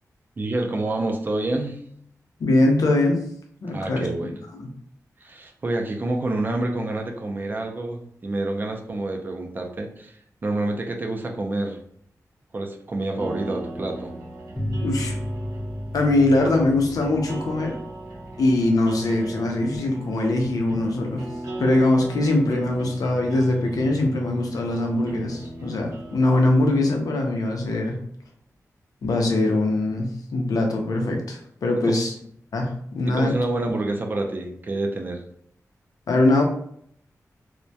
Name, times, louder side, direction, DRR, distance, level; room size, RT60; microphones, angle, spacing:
voice 1, 0.4-1.8 3.7-4.3 5.2-10.2 10.4-11.8 12.5-14.1 31.9-32.1 33.1-35.2, right 2 dB, 35° right, 2 dB, 0.4 m, -28 dB
voice 2, 2.4-3.2 3.6-4.1 4.6-4.7 14.8-15.2 15.9-17.8 18.4-21.3 21.6-28.0 29.0-32.1 32.5-33.3 36.1-36.4, left 2 dB, 85° left, 2 dB, 0.5 m, -22 dB
sound 1, 13.2-26.8, right 1 dB, 90° right, 0.7 m, -38 dB
sound 2, 14.6-19.7, equal, 10° left, 0.7 m, -34 dB
2.2 x 2.1 x 2.7 m, 0.66 s
wide cardioid pair, 120°, 6 cm